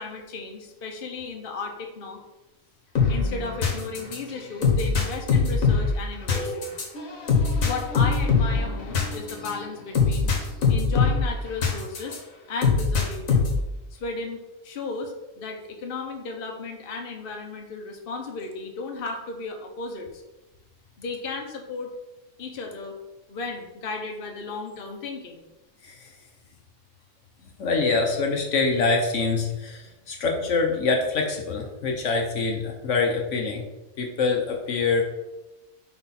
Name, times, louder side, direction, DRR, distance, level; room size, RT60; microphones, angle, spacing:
voice 1, 0.0-2.2 3.1-6.7 7.6-10.3 10.7-12.2 12.5-13.5 13.9-20.2 21.0-21.9 22.4-23.0 23.3-25.4, left 4 dB, 45° left, 2 dB, 1.0 m, -34 dB
sound 1, 2.9-12.2 12.6-13.7, left 5 dB, 85° left, 1.7 m, -23 dB
voice 2, 27.6-33.6 34.0-35.0, left 4 dB, 70° left, 2 dB, 1.1 m, -25 dB
5.9 x 4.8 x 4.2 m, 1.0 s
omnidirectional pair, 1.4 m